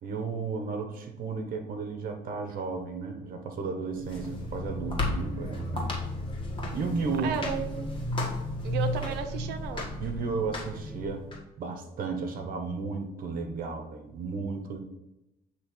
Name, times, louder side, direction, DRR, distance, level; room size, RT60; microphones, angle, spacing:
voice 1, 0.0-5.9 6.7-7.4 10.0-11.3 11.6-14.8, right 4 dB, 55° right, 5 dB, 1.1 m, -33 dB
sound 1, 3.9-11.4, left 1 dB, 30° left, 1.6 m, -33 dB
voice 2, 7.2-7.9 8.6-9.9, right 6 dB, 85° right, 7 dB, 0.7 m, -33 dB
7.9 x 3.1 x 4.5 m, 0.92 s
cardioid pair, 110°, 17 cm